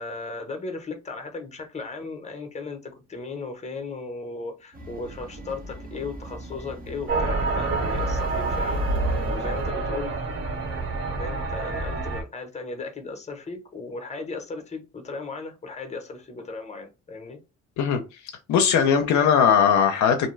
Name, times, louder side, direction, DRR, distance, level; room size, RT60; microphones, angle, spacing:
voice 1, 0.0-8.9 9.3-10.2 10.5-17.4, left 3 dB, 20° left, 0.8 m, -36 dB
sound 1, 4.7-9.7, right 1 dB, 30° right, 0.8 m, -37 dB
sound 2, 7.1-12.2, right 2 dB, 50° right, 1.1 m, -27 dB
voice 2, 18.5-20.3, left 7 dB, 70° left, 0.5 m, -19 dB
2.6 x 2.2 x 3.1 m
cardioid pair, 90°, 30 cm